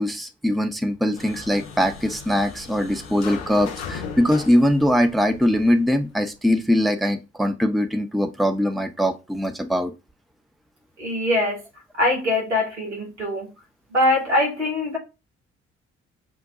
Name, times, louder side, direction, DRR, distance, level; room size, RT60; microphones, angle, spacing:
voice 1, 0.0-9.9, equal, ahead, 0.5 m, -22 dB
sound 1, 1.1-6.3, left 6 dB, 75° left, 0.6 m, -37 dB
voice 2, 11.0-11.6 11.9-13.5 13.9-15.0, left 1 dB, 90° right, 0.9 m, -22 dB
6.1 x 2.2 x 2.5 m
figure-of-eight pair, 40°, 34 cm